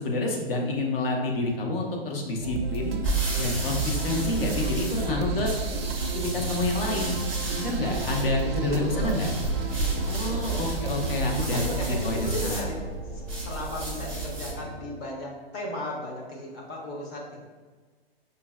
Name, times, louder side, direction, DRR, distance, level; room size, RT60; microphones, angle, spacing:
voice 1, 0.0-3.0 3.4-5.5 6.1-7.2 7.6-9.3 10.1-11.6 11.9-12.7, left 2 dB, 65° left, 1 dB, 0.9 m, -28 dB
sound 1, 2.4-12.4, right 4 dB, 75° right, 0.5 m, -32 dB
sound 2, 2.7-14.6, right 2 dB, 5° left, 0.3 m, -32 dB
voice 2, 8.7-9.2 10.1-10.5 11.4-12.8 13.1-17.4, left 1 dB, 25° left, -2 dB, 0.7 m, -36 dB
sound 3, 9.3-15.0, left 2 dB, 80° left, 1.3 m, -42 dB
5.3 x 2.1 x 2.3 m, 1.4 s
hypercardioid pair, 145°, 31 cm